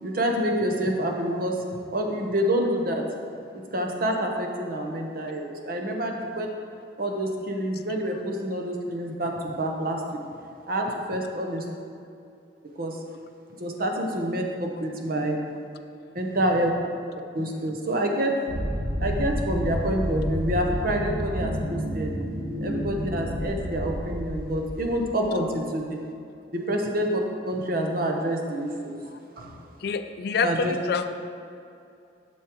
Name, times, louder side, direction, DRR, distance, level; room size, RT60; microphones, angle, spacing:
voice 1, 0.0-1.6 1.9-3.0 3.5-6.5 7.0-10.2 10.7-11.7 12.8-13.0 13.6-15.4 16.1-16.7 17.3-18.3 19.0-22.1 22.6-26.0 26.5-29.0 29.4-29.6 30.4-30.7, right 1 dB, 55° right, 2 dB, 0.9 m, -27 dB
sound 1, 18.5-25.3, equal, 85° right, 1.3 m, -30 dB
voice 2, 29.8-31.1, left 5 dB, 60° left, 8 dB, 0.4 m, -27 dB
12.0 x 6.3 x 3.0 m, 2.5 s
head